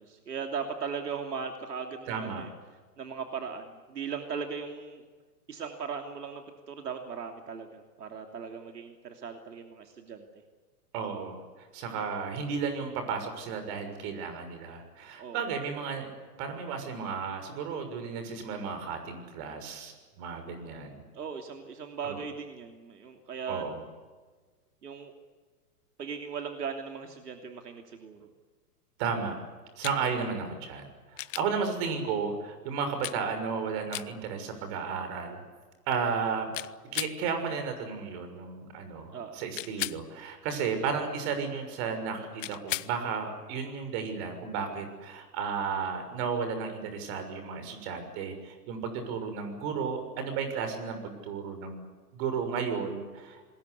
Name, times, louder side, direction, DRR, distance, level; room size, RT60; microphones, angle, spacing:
voice 1, 0.0-2.5 3.0-5.1 5.5-10.4 15.2-15.4 21.1-23.7 24.8-25.1 26.0-28.3 39.1-39.4, right 6 dB, 80° right, 4 dB, 3.1 m, -38 dB
voice 2, 2.1-2.5 10.9-11.4 11.7-16.1 16.4-21.0 22.0-22.2 23.5-23.8 29.0-29.4 29.8-35.4 35.9-36.5 36.9-51.8 52.1-53.4, right 5 dB, 40° right, 7 dB, 6.6 m, -33 dB
sound 1, 29.8-30.0 31.2-31.5 33.0-33.2 33.9-34.1 36.5-37.2 39.5-40.0 42.4-42.9 45.2-45.3, left 15 dB, 55° left, 0.9 m, -35 dB
27.0 x 21.5 x 8.3 m, 1.4 s
hypercardioid pair, 120°, 47 cm